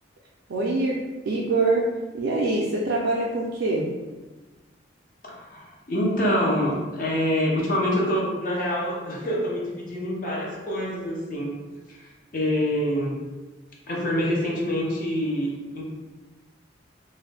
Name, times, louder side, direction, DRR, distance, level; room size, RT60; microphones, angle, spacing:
voice 1, 0.5-3.9, right 2 dB, 75° right, -3 dB, 0.4 m, -24 dB
voice 2, 5.2-11.5 11.9-13.2 13.9-15.8, equal, 45° left, -3 dB, 0.5 m, -26 dB
2.5 x 2.1 x 3.2 m, 1.2 s
head